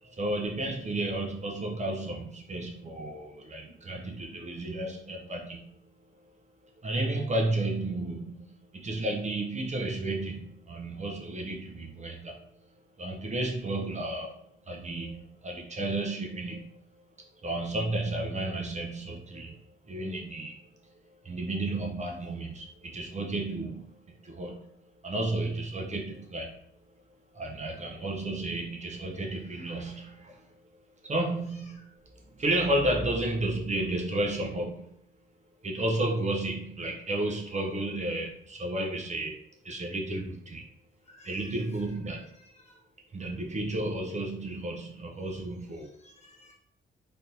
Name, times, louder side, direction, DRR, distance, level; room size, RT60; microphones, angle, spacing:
voice 1, 0.0-5.7 6.8-8.4 8.7-12.4 13.0-14.4 14.7-16.8 17.4-20.6 21.2-26.6 27.3-30.5 31.0-31.9 32.3-34.9 35.6-39.4 39.6-40.7 41.2-42.3 43.1-45.9, right 1 dB, 35° right, 0 dB, 0.6 m, -32 dB
voice 2, 31.5-31.9 41.0-42.8 45.2-45.3 45.8-46.5, left 1 dB, 30° left, -2 dB, 1.2 m, -56 dB
3.4 x 2.8 x 2.6 m, 0.72 s
cardioid pair, 90°, 21 cm